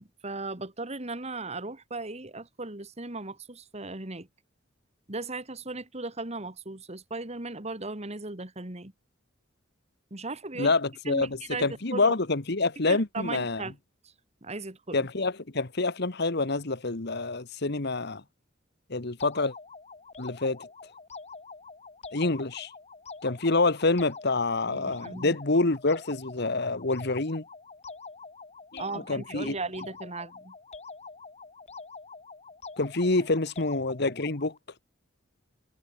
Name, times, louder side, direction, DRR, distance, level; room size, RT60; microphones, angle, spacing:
voice 1, 0.0-4.3 5.1-8.9 10.1-10.7 11.1-12.2 12.9-13.7 14.4-15.1 24.7-25.4 28.8-30.5, right 3 dB, 30° right, 2.4 m, -37 dB
voice 2, 10.6-13.6 14.9-18.2 18.9-19.5 20.2-20.7 22.1-22.7 23.2-27.4 28.7-28.8 29.1-29.5 32.8-34.5, left 3 dB, 55° left, 1.5 m, -27 dB
sound 1, 19.2-34.6, left 4 dB, 35° left, 2.2 m, -45 dB
head